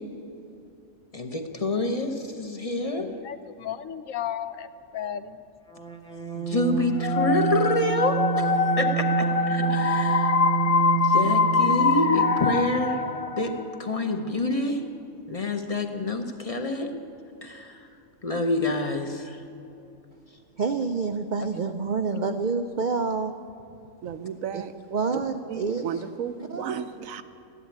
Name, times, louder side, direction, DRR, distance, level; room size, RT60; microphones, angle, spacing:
voice 1, 1.1-3.1 6.3-10.3 10.7-10.8 11.0-13.0 13.4-14.8 15.3-16.9 17.4-17.8 18.2-19.4, left 2 dB, 30° left, 5 dB, 0.8 m, -27 dB
voice 2, 3.0-5.4 21.4-21.6 22.1-22.2, left 9 dB, 75° left, 12 dB, 1.0 m, -34 dB
sound 1, 5.7-12.5, right 9 dB, 5° left, 0.8 m, -28 dB
sound 2, 7.0-13.8, left 5 dB, 55° left, 0.4 m, -24 dB
voice 3, 20.6-23.3 24.5-25.9 26.5-26.8, right 4 dB, 60° right, 7 dB, 0.5 m, -28 dB
voice 4, 24.0-24.7 25.1-25.2 25.5-27.2, right 8 dB, 75° right, 11 dB, 1.1 m, -33 dB
14.0 x 11.0 x 8.6 m, 2.7 s
omnidirectional pair, 1.4 m